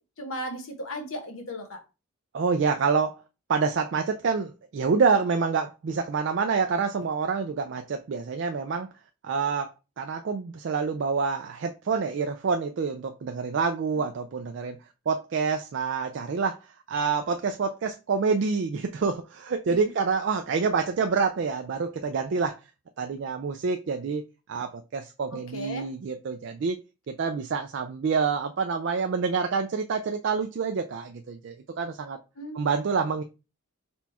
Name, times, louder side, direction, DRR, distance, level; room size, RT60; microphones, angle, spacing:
voice 1, 0.2-1.8 25.5-25.9 32.4-32.6, equal, 70° left, 1.0 m, -35 dB
voice 2, 2.3-3.2 3.5-8.9 9.2-14.8 15.1-22.6 23.0-24.2 24.5-26.8 27.1-32.2 32.5-33.2, right 5 dB, 55° right, 0.3 m, -27 dB
4.3 x 2.3 x 4.2 m
head